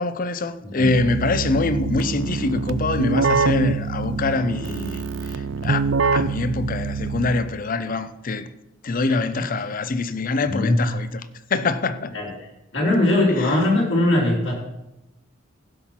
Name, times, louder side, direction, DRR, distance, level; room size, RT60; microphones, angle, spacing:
voice 1, 0.0-5.0 5.3-8.5 8.8-12.1 13.4-13.6, left 3 dB, 45° left, 0.6 m, -24 dB
Keyboard (musical), 0.8-7.7, right 4 dB, 70° right, 0.4 m, -25 dB
voice 2, 10.4-10.9 12.1-12.3 12.7-14.5, left 1 dB, 65° left, 3.8 m, -20 dB
15.5 x 5.8 x 5.8 m
head